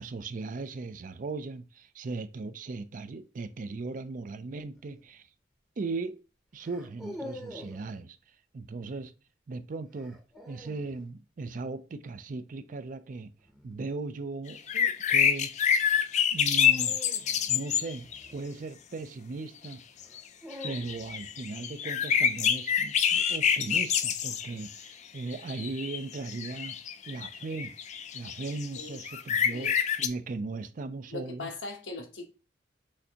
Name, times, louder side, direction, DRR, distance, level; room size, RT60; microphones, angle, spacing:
voice 1, 0.0-5.3 5.8-6.2 6.5-8.2 8.5-9.1 9.5-10.2 10.5-13.3 13.6-15.5 16.3-17.0 17.5-19.8 20.6-26.8 27.1-27.7 28.1-31.5, right 3 dB, 45° right, 0.4 m, -38 dB
sound 1, 4.8-5.1 6.6-7.9 10.0-11.0 13.4-13.8 16.6-18.9 20.0-21.3, left 1 dB, ahead, 0.7 m, -46 dB
sound 2, 14.5-18.3 19.6-19.7 20.0-20.2 20.5-24.7 25.3-30.1, left 8 dB, 40° left, 0.3 m, -27 dB
voice 2, 31.1-32.3, left 3 dB, 90° left, 1.0 m, -39 dB
6.3 x 2.7 x 2.8 m
head